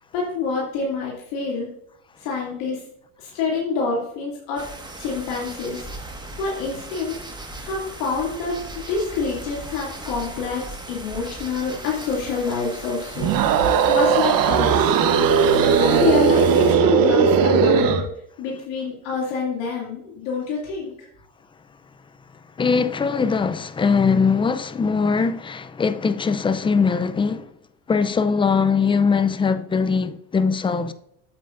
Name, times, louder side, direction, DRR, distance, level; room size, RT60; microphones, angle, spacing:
voice 1, 0.1-1.7 2.2-2.8 3.2-4.6 5.0-5.8 6.4-7.1 7.6-8.6 8.9-13.3 13.9-14.9 15.8-18.0 18.4-20.9, left 4 dB, 80° left, 2.6 m, -26 dB
sound 1, 4.6-16.8, right 2 dB, 10° right, 1.6 m, -37 dB
sound 2, 13.2-18.1, right 6 dB, 60° right, 1.1 m, -17 dB
voice 2, 22.6-27.5 27.9-30.9, left 5 dB, 15° left, 0.5 m, -21 dB
8.6 x 7.6 x 2.6 m
supercardioid pair, 105°, 39 cm